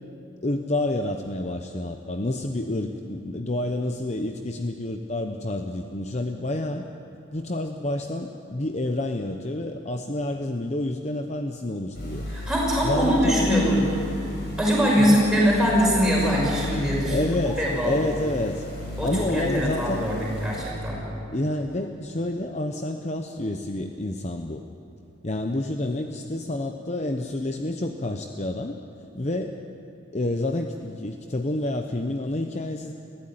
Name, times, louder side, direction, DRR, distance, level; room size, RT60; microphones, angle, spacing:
voice 1, 0.4-6.9 7.3-12.3 12.8-13.8 14.9-15.2 17.0-18.7 19.0-20.1 21.3-24.6 25.2-28.8 29.1-29.6 30.1-32.9, left 1 dB, 35° left, 5 dB, 0.8 m, -29 dB
sound 1, 11.9-20.6, left 1 dB, 50° left, 6.3 m, -34 dB
voice 2, 12.3-13.8 14.6-17.2 17.6-18.0 19.0-21.0, equal, 5° right, -5 dB, 5.7 m, -22 dB
21.0 x 15.0 x 9.3 m, 2.8 s
head